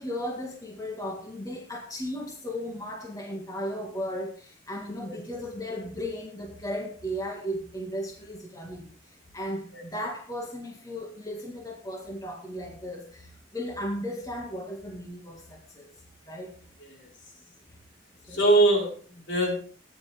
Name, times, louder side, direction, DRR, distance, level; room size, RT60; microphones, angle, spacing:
voice 1, 0.0-15.9 16.2-16.5 18.3-18.5, equal, 20° left, 0 dB, 1.9 m, -36 dB
voice 2, 18.3-19.7, right 2 dB, 65° left, -1 dB, 4.6 m, -23 dB
15.5 x 10.0 x 3.4 m, 0.41 s
head